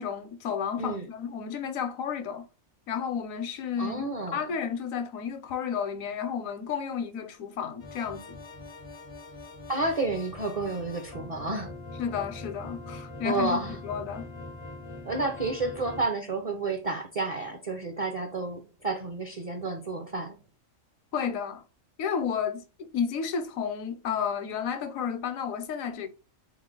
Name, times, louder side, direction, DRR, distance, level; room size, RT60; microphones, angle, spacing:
voice 1, 0.0-2.5 2.9-4.1 4.3-8.2 12.0-14.3 21.1-21.6 22.0-26.1, left 7 dB, 80° left, 1.0 m, -32 dB
voice 2, 0.8-1.1 3.8-4.4 9.7-11.7 13.2-13.8 15.0-20.4, right 3 dB, 40° right, 0.5 m, -30 dB
sound 1, 7.8-16.1, left 2 dB, 50° left, 0.3 m, -42 dB
3.8 x 3.1 x 3.7 m
omnidirectional pair, 1.4 m